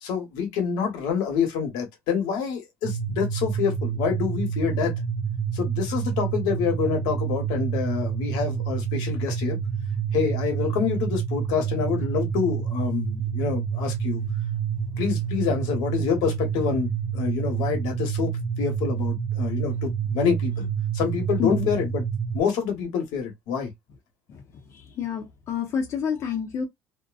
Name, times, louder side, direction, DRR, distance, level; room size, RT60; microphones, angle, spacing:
voice 1, 0.0-4.9 5.5-9.6 10.1-14.2 15.0-18.3 18.6-20.7 20.9-22.0 22.3-23.7, left 6 dB, 90° left, 1.1 m, -27 dB
sound 1, 2.8-22.4, right 7 dB, 55° right, 0.5 m, -28 dB
voice 2, 21.4-21.7 24.3-24.4 24.7-26.7, left 7 dB, 45° left, 0.7 m, -28 dB
2.6 x 2.2 x 2.3 m
cardioid pair, 160°, 7 cm